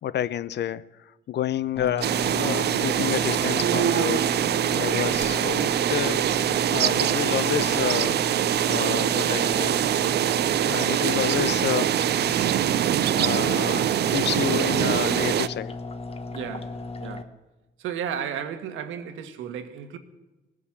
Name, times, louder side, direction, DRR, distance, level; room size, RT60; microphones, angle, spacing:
voice 1, 0.0-0.9 1.3-4.4 4.7-6.2 6.6-8.2 8.7-9.8 10.6-12.0 13.2-15.7, left 10 dB, 60° left, 0.6 m, -29 dB
sound 1, 1.8-17.2, left 3 dB, 30° left, 1.1 m, -35 dB
sound 2, 2.0-15.5, right 11 dB, 55° right, 0.5 m, -23 dB
voice 2, 16.3-16.7 17.0-17.3 17.8-20.0, right 8 dB, 85° right, 1.4 m, -33 dB
19.0 x 9.9 x 7.3 m
cardioid pair, 90°, 20 cm